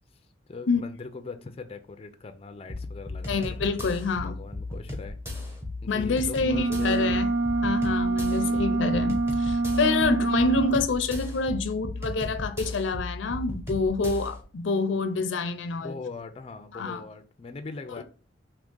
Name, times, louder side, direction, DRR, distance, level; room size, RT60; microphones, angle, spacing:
voice 1, 0.5-3.4 4.2-5.2 5.8-7.3 8.3-8.8 15.8-18.0, left 4 dB, 30° left, 0.4 m, -41 dB
sound 1, 2.7-14.4, left 2 dB, 15° right, 1.0 m, -36 dB
voice 2, 3.3-4.4 5.9-7.3 7.6-16.0 16.7-17.0, left 3 dB, 90° left, 0.5 m, -27 dB
sound 2, 6.4-10.8, right 3 dB, 85° right, 0.4 m, -26 dB
3.5 x 2.8 x 3.7 m
head